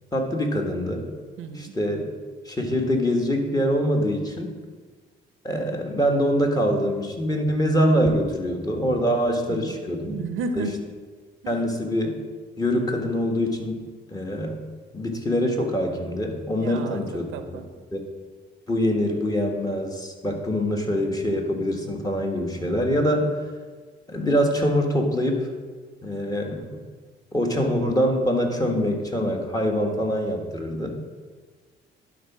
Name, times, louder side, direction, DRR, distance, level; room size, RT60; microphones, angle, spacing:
voice 1, 0.1-1.1 1.5-2.0 2.4-4.5 5.4-10.2 10.6-10.7 11.5-12.1 12.6-13.8 14.1-14.6 14.9-17.6 17.9-18.0 18.7-23.3 24.1-25.5 26.0-26.8 27.3-31.0, equal, 20° left, 1 dB, 1.6 m, -24 dB
voice 2, 1.4-1.7 9.5-9.8 10.1-10.7 11.4-11.5 16.6-17.7, right 4 dB, 90° right, 9 dB, 0.8 m, -33 dB
11.0 x 4.0 x 5.9 m, 1.5 s
cardioid pair, 90°, 20 cm